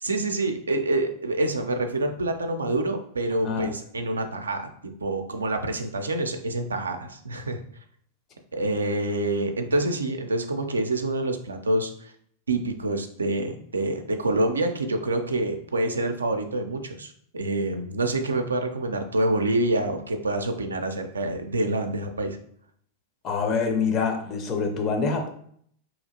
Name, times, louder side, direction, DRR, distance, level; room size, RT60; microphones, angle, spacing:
voice 1, 0.0-4.7 5.0-7.6 8.5-12.1 12.5-22.4, right 2 dB, 85° right, 6 dB, 0.3 m, -27 dB
voice 2, 23.2-25.3, left 5 dB, 35° left, 4 dB, 0.6 m, -25 dB
2.8 x 2.4 x 2.7 m, 0.64 s
hypercardioid pair, 95°, 0 cm